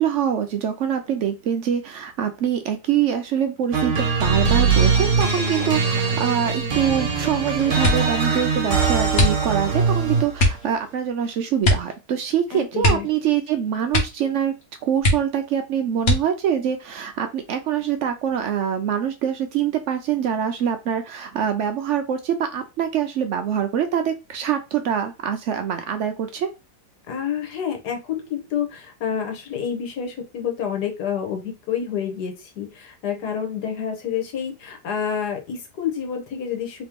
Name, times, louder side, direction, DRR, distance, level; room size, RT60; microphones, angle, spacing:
voice 1, 0.0-14.5 14.8-26.5, right 8 dB, 70° right, 7 dB, 0.7 m, -24 dB
sound 1, 3.7-10.4, right 5 dB, 55° right, 1.3 m, -21 dB
sound 2, 7.8-8.2 9.1-9.8 10.3-10.7 11.6-12.0 12.2-12.3 12.8-13.5 13.9-14.3 14.6-14.7 15.0-15.5 16.0-16.5 17.3-17.9 18.3-18.6, left 1 dB, 50° left, 1.3 m, -22 dB
voice 2, 12.5-13.1 27.1-36.8, left 8 dB, 80° left, 4 dB, 1.5 m, -28 dB
3.2 x 2.9 x 3.5 m, 0.26 s
omnidirectional pair, 1.7 m